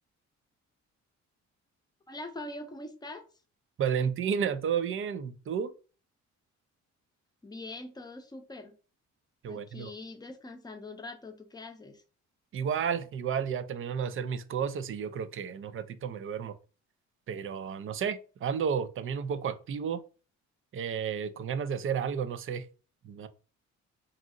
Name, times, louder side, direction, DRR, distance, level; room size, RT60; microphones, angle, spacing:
voice 1, 2.1-3.2 7.4-8.7 9.5-12.0, left 2 dB, 15° left, 0.6 m, -43 dB
voice 2, 3.8-5.7 9.4-9.9 12.5-16.6 17.3-20.0 20.7-22.7 23.0-23.3, right 7 dB, 45° right, 0.4 m, -32 dB
2.6 x 2.0 x 3.6 m
cardioid pair, 90°, 30 cm